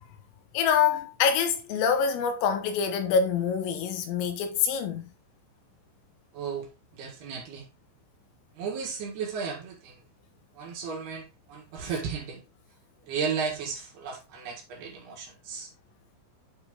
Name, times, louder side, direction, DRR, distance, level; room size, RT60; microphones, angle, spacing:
voice 1, 0.5-5.1, left 7 dB, 90° left, 3.9 m, -25 dB
voice 2, 6.3-6.7 6.9-7.7 8.6-10.0 10.6-12.4 13.1-15.7, right 6 dB, 60° right, 3.5 m, -34 dB
9.6 x 4.4 x 3.6 m
omnidirectional pair, 5.7 m